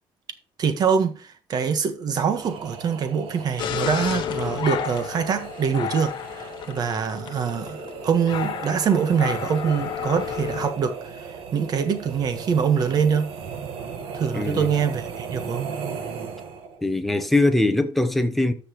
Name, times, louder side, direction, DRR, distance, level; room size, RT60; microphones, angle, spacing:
voice 1, 0.6-13.3 14.1-15.7, right 6 dB, 45° right, 1.4 m, -24 dB
sound 1, 2.3-16.8, right 6 dB, 80° right, 1.5 m, -37 dB
sound 2, 3.6-10.7, left 9 dB, 55° left, 0.8 m, -32 dB
voice 2, 14.3-14.7 16.8-18.5, left 2 dB, ahead, 0.9 m, -21 dB
13.5 x 6.0 x 3.1 m
cardioid pair, 150°, 9 cm